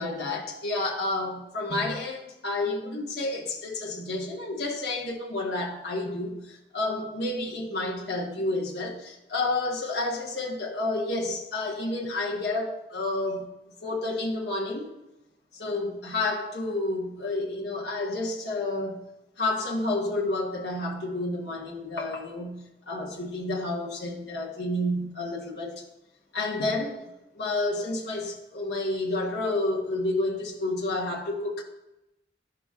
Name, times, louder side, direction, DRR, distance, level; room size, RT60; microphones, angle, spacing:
voice 1, 0.0-13.5 13.8-14.9 15.5-19.1 19.4-25.8 26.3-27.0 27.3-31.6, left 2 dB, 60° left, 1.1 m, -30 dB
11.5 x 5.9 x 2.4 m
head